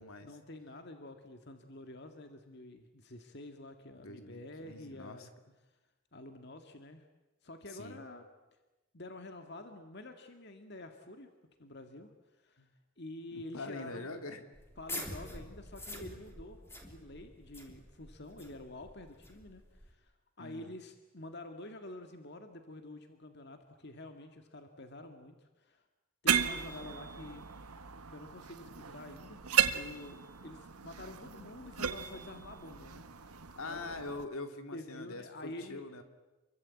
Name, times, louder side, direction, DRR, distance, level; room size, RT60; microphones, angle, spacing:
voice 1, 0.2-5.3 6.1-7.0 7.4-8.3 8.9-11.3 11.6-12.7 13.0-14.1 14.8-20.1 20.4-25.8 26.2-27.5 28.1-30.2 30.4-33.9 34.7-35.8, left 2 dB, 50° left, 6 dB, 2.0 m, -48 dB
voice 2, 3.9-5.3 7.7-8.0 12.6-12.7 13.3-14.5 20.4-20.8 33.6-36.0, left 2 dB, 75° left, 7 dB, 2.6 m, -44 dB
sound 1, 14.6-19.9, left 1 dB, 10° left, 3.3 m, -46 dB
sound 2, 26.3-34.2, right 8 dB, 85° right, 1.4 m, -35 dB
28.5 x 23.5 x 8.5 m, 1.1 s
head